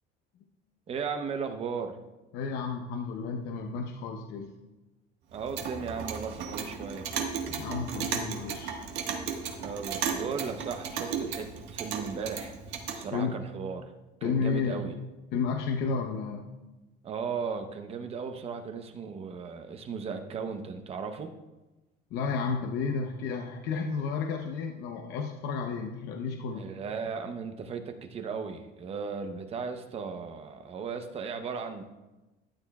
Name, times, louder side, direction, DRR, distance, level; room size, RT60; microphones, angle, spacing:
voice 1, 0.9-2.0 5.3-7.1 9.6-12.6 12.9-13.9 14.2-14.9 17.0-21.3 26.5-31.8, right 5 dB, 30° right, 7 dB, 0.8 m, -36 dB
voice 2, 2.3-4.5 7.5-8.8 13.1-13.4 14.2-14.8 15.3-16.5 22.1-26.7, left 5 dB, 65° left, 3 dB, 0.8 m, -32 dB
Clock, 5.3-13.0, right 6 dB, 65° right, 1.4 m, -35 dB
12.5 x 9.6 x 2.3 m, 1.1 s
cardioid pair, 150°, 19 cm